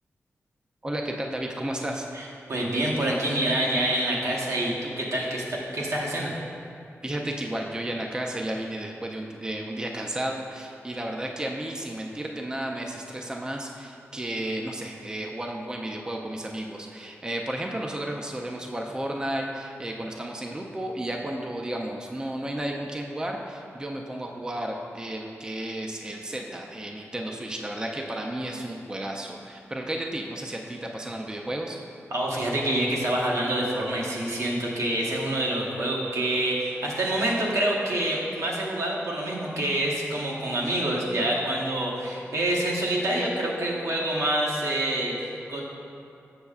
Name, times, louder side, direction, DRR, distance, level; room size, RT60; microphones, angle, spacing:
voice 1, 0.8-2.1 7.0-31.8, right 1 dB, 15° right, 1 dB, 0.4 m, -33 dB
voice 2, 2.1-6.4 32.1-45.6, right 1 dB, 80° right, -4 dB, 1.0 m, -27 dB
6.7 x 6.2 x 2.4 m, 2.7 s
wide cardioid pair, 90°, 5 cm